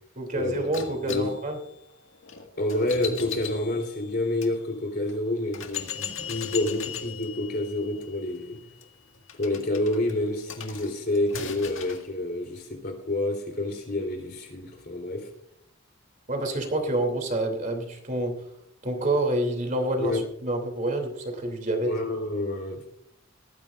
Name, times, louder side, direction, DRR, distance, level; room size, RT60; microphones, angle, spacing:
voice 1, 0.1-1.6 16.3-18.5 18.8-22.0, right 1 dB, 35° right, 3 dB, 2.9 m, -28 dB
sound 1, 0.7-4.5 5.1-5.2 5.5-12.1, left 7 dB, 65° left, 1.9 m, -39 dB
voice 2, 2.6-8.6 9.3-15.3 20.0-20.2 21.8-22.8, left 1 dB, 45° left, 3 dB, 3.5 m, -28 dB
18.5 x 14.5 x 2.5 m, 0.73 s
head